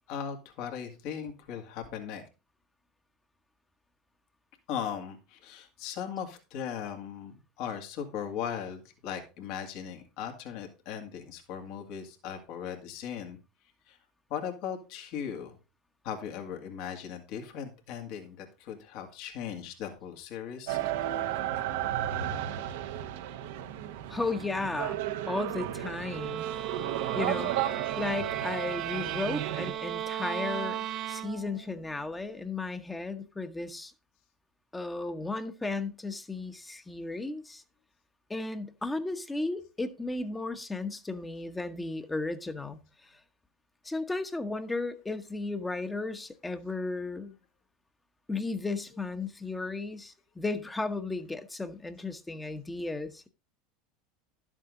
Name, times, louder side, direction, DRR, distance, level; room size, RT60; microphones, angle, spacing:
voice 1, 0.1-2.2 4.7-13.4 13.9-14.0 14.3-15.6 16.0-20.8 21.2-21.4, left 8 dB, 65° left, 2.1 m, -38 dB
sound 1, 20.7-29.7, right 12 dB, 75° right, 0.9 m, -34 dB
voice 2, 24.1-25.0 25.3-26.5 27.1-33.9 34.7-37.6 38.3-43.2 43.8-47.3 48.3-53.3, left 3 dB, 10° left, 1.1 m, -35 dB
sound 2, 26.1-31.7, right 12 dB, 50° right, 0.6 m, -35 dB
11.5 x 7.4 x 3.8 m
hypercardioid pair, 100°, 0 cm